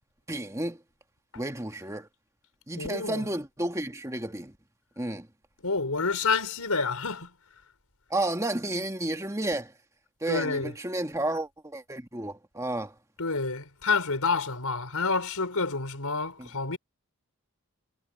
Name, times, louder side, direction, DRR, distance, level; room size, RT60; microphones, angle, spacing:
voice 1, 0.3-0.8 1.3-2.1 2.7-4.5 5.0-5.3 8.1-9.7 10.2-12.9 16.4-16.5, right 1 dB, 15° right, 1.6 m, -31 dB
voice 2, 2.8-3.3 5.6-7.3 10.3-10.8 13.2-16.8, left 4 dB, 85° left, 4.5 m, -28 dB
head